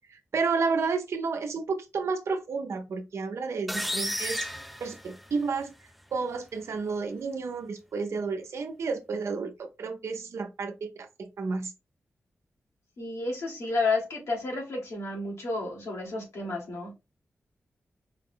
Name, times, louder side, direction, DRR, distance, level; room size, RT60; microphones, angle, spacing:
voice 1, 0.1-4.5 4.8-5.7 6.1-11.7, right 4 dB, 75° right, 0.7 m, -31 dB
sound 1, 3.7-5.6, equal, ahead, 0.4 m, -33 dB
voice 2, 13.0-16.9, left 3 dB, 85° left, 1.8 m, -31 dB
4.8 x 2.0 x 3.7 m
wide cardioid pair, 85°, 5 cm